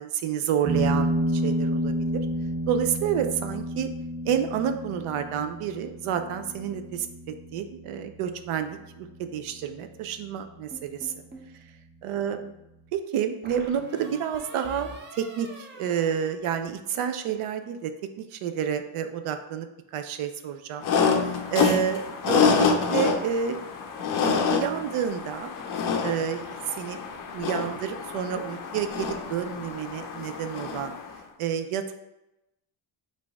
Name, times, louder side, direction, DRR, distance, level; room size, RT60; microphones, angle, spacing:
voice 1, 0.0-2.2 2.7-3.9 4.3-7.1 7.5-9.1 9.3-11.1 12.0-12.5 12.9-17.9 18.2-19.7 19.9-20.9 21.2-23.6 24.2-25.5 26.0-27.0 27.3-30.9 31.4-31.9, right 8 dB, 90° right, 8 dB, 0.6 m, -29 dB
sound 1, 0.6-9.7, right 1 dB, 65° right, 1.3 m, -30 dB
sound 2, 10.7-11.5 13.4-17.1, right 2 dB, 25° right, 0.4 m, -45 dB
sound 3, 20.8-31.1, left 6 dB, 45° left, 0.4 m, -27 dB
5.1 x 2.7 x 3.4 m, 0.95 s
cardioid pair, 160°, 49 cm